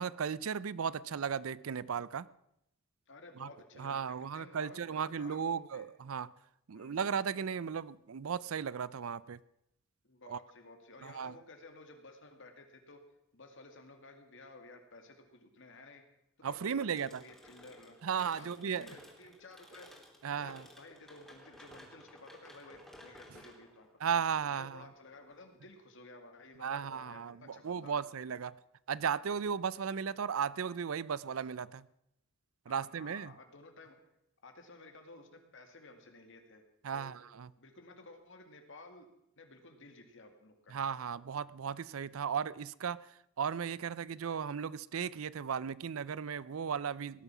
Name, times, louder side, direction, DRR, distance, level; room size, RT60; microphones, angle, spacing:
voice 1, 0.0-2.3 3.4-3.5 3.8-6.3 6.7-9.4 10.3-10.4 11.0-11.3 16.4-17.2 18.0-18.9 20.2-20.6 24.0-24.8 26.6-28.5 28.9-31.9 32.7-33.3 36.8-37.5 40.7-47.2, right 7 dB, 75° right, 19 dB, 0.5 m, -36 dB
voice 2, 3.1-5.9 6.7-7.1 10.0-13.0 13.3-16.0 16.5-18.0 18.4-19.9 20.4-23.9 24.5-28.0 32.7-34.0 34.4-36.6 36.9-37.2 37.6-39.1 39.4-40.7, left 2 dB, 60° left, 5 dB, 2.2 m, -54 dB
sound 1, 16.9-25.6, left 1 dB, ahead, 3.0 m, -57 dB
18.0 x 11.0 x 6.0 m, 0.80 s
head